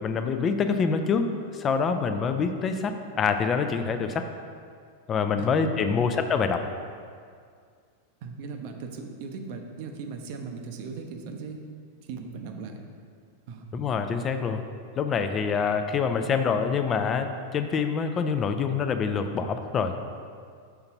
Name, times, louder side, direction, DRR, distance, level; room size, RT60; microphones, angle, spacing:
voice 1, 0.0-1.3 1.5-4.3 5.1-6.6 13.7-14.6 15.0-19.9, left 5 dB, 25° left, 7 dB, 0.4 m, -26 dB
voice 2, 5.4-6.0 8.2-11.6 12.0-12.8 13.5-13.7, right 4 dB, 50° right, 4 dB, 0.6 m, -38 dB
5.7 x 3.8 x 5.6 m, 2.2 s
figure-of-eight pair, 90°, 0 cm